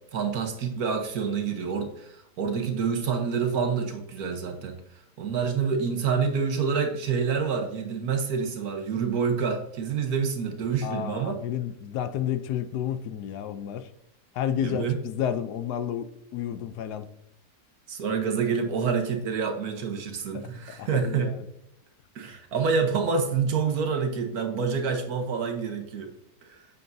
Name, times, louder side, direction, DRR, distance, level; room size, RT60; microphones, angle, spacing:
voice 1, 0.1-4.8 5.2-11.4 14.6-15.0 17.9-21.3 22.1-26.1 26.4-26.6, right 5 dB, 65° right, 5 dB, 1.5 m, -27 dB
voice 2, 10.8-13.9 14.3-17.1 20.3-21.4, left 9 dB, 80° left, 11 dB, 1.2 m, -31 dB
8.3 x 6.7 x 2.6 m, 0.80 s
omnidirectional pair, 1.7 m